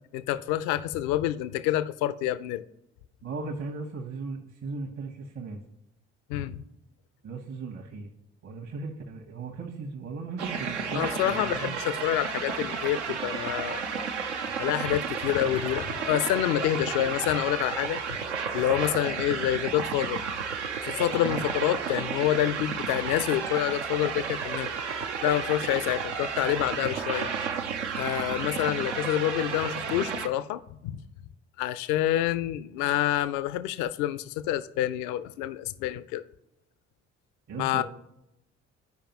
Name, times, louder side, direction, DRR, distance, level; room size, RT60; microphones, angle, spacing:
voice 1, 0.1-2.6 6.3-6.6 10.9-13.8 14.6-18.0 18.5-20.2 20.8-24.7 25.2-27.3 28.0-31.0 31.6-36.2 37.6-37.8, left 13 dB, 65° left, 0.4 m, -27 dB
voice 2, 3.2-5.6 7.2-8.1 8.4-11.8 21.2-21.4 37.5-37.8, right 4 dB, 50° right, 1.1 m, -37 dB
sound 1, 10.4-30.3, right 6 dB, 85° right, 0.6 m, -32 dB
12.5 x 5.0 x 2.9 m
figure-of-eight pair, 45°, 34 cm